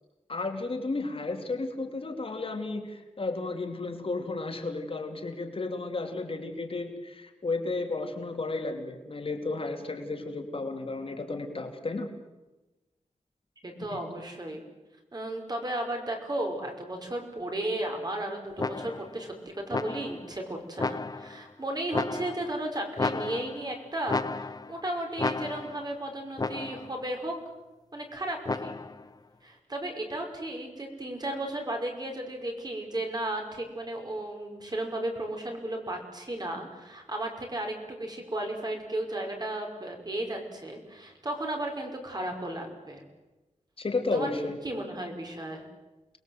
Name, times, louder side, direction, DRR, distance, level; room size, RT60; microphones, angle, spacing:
voice 1, 0.3-12.1 13.9-14.0 43.8-44.6, left 3 dB, 50° left, 4 dB, 2.9 m, -33 dB
voice 2, 13.6-14.6 15.1-27.3 27.9-28.8 29.4-43.0 44.1-44.3 44.6-45.6, right 1 dB, 30° right, 2 dB, 5.4 m, -34 dB
sound 1, 18.6-19.2 19.7-20.3 20.8-21.4 21.9-22.6 23.0-23.7 24.1-24.8 25.2-25.9 26.4-27.0 28.5-29.1, left 3 dB, 30° left, 0.8 m, -33 dB
29.0 x 21.0 x 8.0 m, 1.1 s
wide cardioid pair, 130°, 13 cm